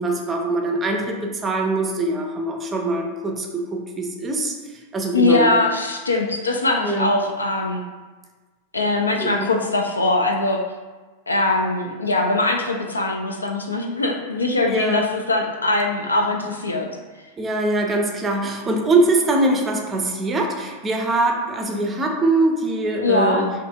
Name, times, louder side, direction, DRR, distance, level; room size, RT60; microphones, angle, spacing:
voice 1, 0.0-4.5 4.9-5.6 6.8-7.1 9.2-9.5 14.7-15.1 17.4-23.5, right 2 dB, 20° right, 2 dB, 0.5 m, -22 dB
voice 2, 5.1-7.8 8.7-10.6 11.3-16.9 23.0-23.4, left 2 dB, 80° left, 1 dB, 0.3 m, -21 dB
2.8 x 2.5 x 3.3 m, 1.3 s
figure-of-eight pair, 90°, 0 cm